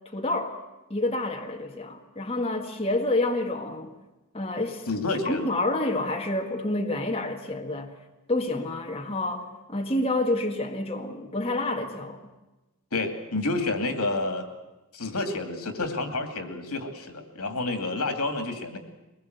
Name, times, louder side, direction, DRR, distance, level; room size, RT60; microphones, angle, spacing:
voice 1, 0.1-0.6 0.9-3.9 4.3-4.9 5.2-7.9 8.3-12.2, left 2 dB, 25° left, 2 dB, 1.7 m, -28 dB
voice 2, 4.9-5.5 12.9-14.5 14.9-18.8, left 2 dB, 85° left, 7 dB, 2.6 m, -29 dB
22.5 x 20.0 x 8.1 m, 1.1 s
head